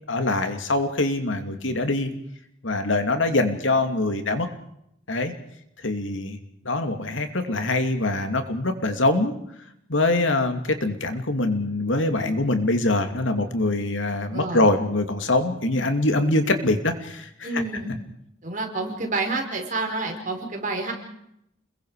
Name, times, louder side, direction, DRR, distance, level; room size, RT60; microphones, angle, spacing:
voice 1, 0.1-2.1 2.6-4.5 5.1-5.3 5.8-6.4 6.6-9.4 9.9-17.5, left 2 dB, 75° left, 7 dB, 2.7 m, -23 dB
voice 2, 14.3-14.7 17.4-18.0 18.4-20.9, right 3 dB, 40° right, 3 dB, 5.1 m, -28 dB
29.5 x 22.0 x 5.0 m, 0.76 s
head